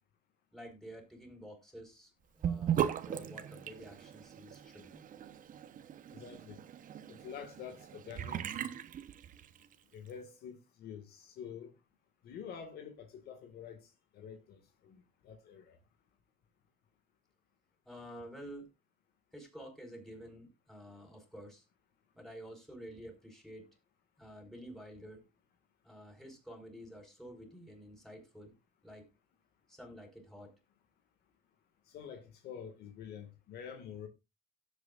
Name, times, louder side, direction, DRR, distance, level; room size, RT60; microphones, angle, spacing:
voice 1, 0.5-5.1 17.8-18.7 19.3-21.6 22.1-23.7 24.2-25.2 25.8-28.5 28.8-29.1 29.7-30.6, equal, ahead, 4.9 m, -50 dB
Sink (filling or washing) / Bathtub (filling or washing), 2.4-9.7, right 9 dB, 50° right, 1.0 m, -38 dB
voice 2, 6.1-6.6 7.1-8.6 9.9-11.7 12.2-13.9 14.1-15.8 31.9-34.1, left 7 dB, 70° left, 1.9 m, -47 dB
17.0 x 7.9 x 2.5 m
cardioid pair, 110°, 17 cm